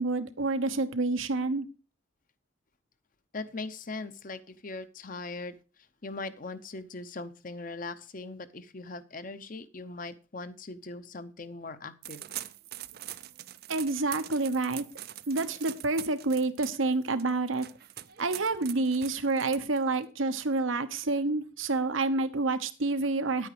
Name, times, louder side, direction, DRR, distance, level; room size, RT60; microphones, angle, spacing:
voice 1, 0.0-1.7 13.7-14.8 15.3-17.7 18.2-23.5, right 3 dB, 85° right, 11 dB, 1.1 m, -28 dB
voice 2, 3.3-5.5 6.0-12.2, left 3 dB, 45° left, 12 dB, 0.8 m, -40 dB
sound 1, 12.0-20.0, right 13 dB, 50° right, 0.5 m, -43 dB
10.0 x 8.9 x 4.9 m, 0.35 s
head